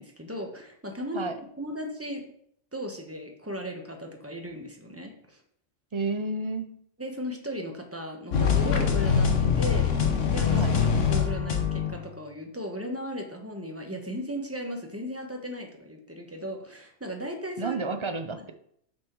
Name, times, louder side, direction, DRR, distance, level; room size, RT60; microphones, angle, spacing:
voice 1, 0.0-1.3 1.6-2.2 2.7-5.4 7.0-9.9 10.3-10.6 11.1-17.8, equal, 10° right, 2 dB, 1.1 m, -36 dB
voice 2, 5.9-6.7 10.5-10.7 17.6-18.5, right 3 dB, 35° right, 7 dB, 0.5 m, -30 dB
sound 1, 8.3-12.1, left 6 dB, 80° left, 1.3 m, -24 dB
6.3 x 6.0 x 4.6 m, 0.68 s
omnidirectional pair, 1.3 m